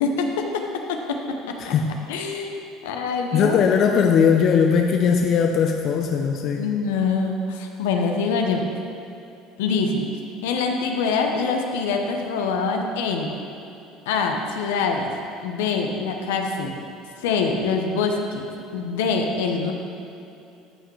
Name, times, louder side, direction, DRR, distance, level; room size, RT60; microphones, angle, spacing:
voice 1, 0.0-1.7 2.1-2.6 2.8-3.6 6.6-8.7 9.6-10.1 10.4-13.3 14.1-15.1 15.4-16.7 17.2-18.4 18.7-19.7, left 4 dB, 80° left, 3 dB, 0.7 m, -24 dB
voice 2, 1.6-1.9 3.3-6.7, left 6 dB, 55° left, 4 dB, 0.5 m, -19 dB
12.5 x 5.7 x 3.2 m, 2.6 s
hypercardioid pair, 75°, 0 cm